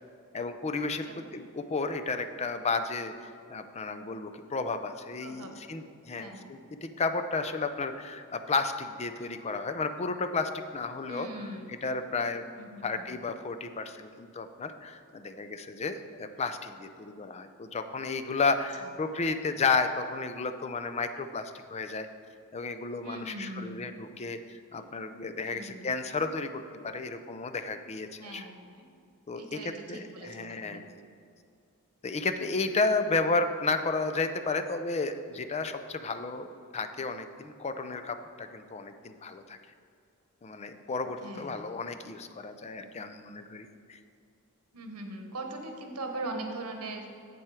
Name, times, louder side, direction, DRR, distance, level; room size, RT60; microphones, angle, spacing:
voice 1, 0.3-3.1 3.5-12.5 12.8-22.1 22.5-28.4 29.3-31.0 32.0-39.6 40.4-44.0, left 3 dB, 30° left, 9 dB, 0.4 m, -32 dB
voice 2, 6.1-6.5 11.1-11.8 12.6-13.1 18.8-18.9 23.0-23.9 25.4-25.9 28.2-28.8 29.4-30.8 41.2-41.6 44.7-47.2, right 2 dB, 90° right, 4 dB, 1.2 m, -41 dB
7.7 x 7.4 x 4.8 m, 2.3 s
head